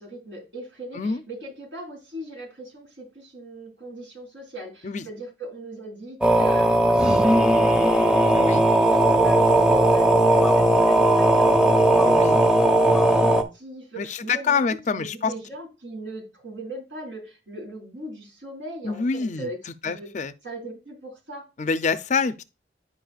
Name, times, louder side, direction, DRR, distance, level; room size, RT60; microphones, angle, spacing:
voice 1, 0.0-8.9 9.2-19.6 19.8-20.1 20.4-21.4, right 1 dB, 90° right, 4.2 m, -39 dB
sound 1, 6.2-13.4, right 1 dB, 5° right, 0.7 m, -18 dB
voice 2, 12.0-12.4 14.0-15.3 18.8-20.3 21.6-22.4, left 5 dB, 40° left, 0.4 m, -26 dB
10.5 x 5.3 x 2.4 m
head